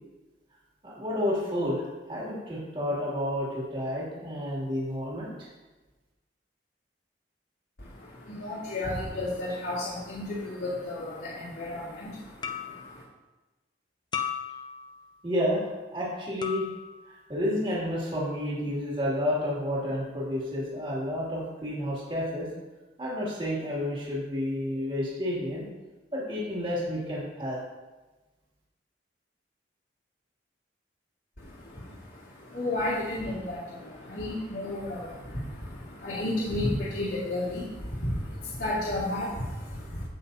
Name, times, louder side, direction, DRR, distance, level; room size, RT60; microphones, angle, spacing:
voice 1, 0.8-1.8 2.1-5.3 15.2-16.7 17.1-22.5 23.0-25.7 26.1-27.6, left 1 dB, 30° right, -7 dB, 2.6 m, -30 dB
voice 2, 7.8-13.0 31.4-40.0, left 1 dB, 75° left, -9 dB, 2.2 m, -33 dB
sound 1, 11.0-11.3 12.4-13.0 14.1-15.0 16.4-17.1, left 8 dB, 25° left, 0.7 m, -36 dB
15.5 x 5.7 x 2.8 m, 1.2 s
head